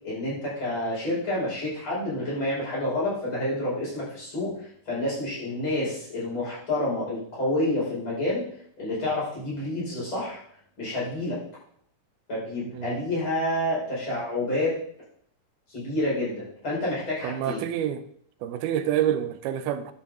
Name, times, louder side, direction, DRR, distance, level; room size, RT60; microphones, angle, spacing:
voice 1, 0.0-8.4 8.8-10.4 10.8-11.4 12.3-14.8 15.7-17.6, left 1 dB, 30° left, 6.0 m, -29 dB
voice 2, 17.2-18.0 18.4-19.9, right 10 dB, 90° right, 2.6 m, -27 dB
11.0 x 8.6 x 3.7 m
omnidirectional pair, 4.4 m